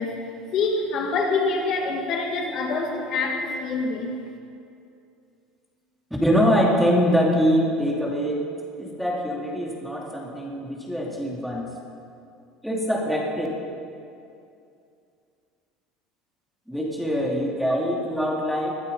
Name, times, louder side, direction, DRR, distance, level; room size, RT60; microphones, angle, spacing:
voice 1, 0.0-4.2, left 3 dB, 50° left, 1 dB, 2.1 m, -26 dB
voice 2, 6.2-8.4 8.8-11.7 12.6-13.5 16.7-18.7, equal, ahead, -2 dB, 2.7 m, -23 dB
21.0 x 12.5 x 5.5 m, 2.5 s
cardioid pair, 145°, 0 cm